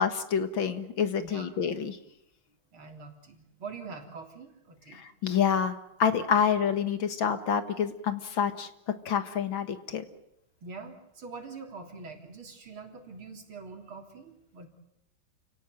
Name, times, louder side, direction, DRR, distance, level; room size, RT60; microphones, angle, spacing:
voice 1, 0.0-2.0 4.9-8.7 9.1-10.0, left 7 dB, 70° left, 10 dB, 2.4 m, -28 dB
voice 2, 1.2-1.5 2.7-5.0 10.6-14.7, right 4 dB, 80° right, 4 dB, 4.2 m, -44 dB
29.0 x 18.0 x 9.3 m, 0.81 s
omnidirectional pair, 2.3 m